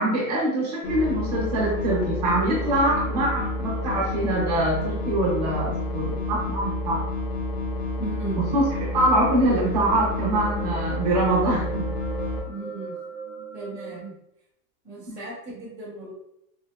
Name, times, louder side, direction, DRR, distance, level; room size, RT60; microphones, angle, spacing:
voice 1, 0.0-7.0 8.5-8.6 8.9-11.9 15.1-15.2, right 1 dB, 25° right, -4 dB, 0.5 m, -24 dB
sound 1, 0.8-12.4, left 2 dB, 75° left, 1.2 m, -29 dB
voice 2, 8.0-8.5 12.5-13.0 13.5-14.2 14.8-16.1, right 3 dB, 25° left, -14 dB, 0.3 m, -36 dB
sound 2, 9.7-14.0, right 4 dB, 55° left, 0.7 m, -38 dB
3.5 x 2.3 x 2.2 m, 0.79 s
supercardioid pair, 170°, 49 cm